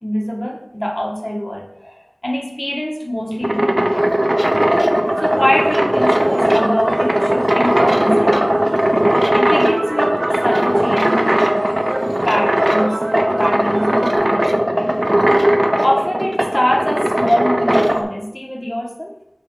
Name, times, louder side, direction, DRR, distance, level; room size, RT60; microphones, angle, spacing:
voice 1, 0.0-3.8 5.2-8.7 9.3-11.7 12.3-13.0 13.3-15.6 15.8-19.1, equal, 30° left, -1 dB, 1.6 m, -23 dB
sound 1, 3.2-18.0, right 1 dB, 25° right, 0.8 m, -17 dB
sound 2, 5.1-14.2, right 1 dB, 85° right, 0.7 m, -29 dB
8.0 x 3.1 x 5.4 m, 0.83 s
wide cardioid pair, 40°, 0 cm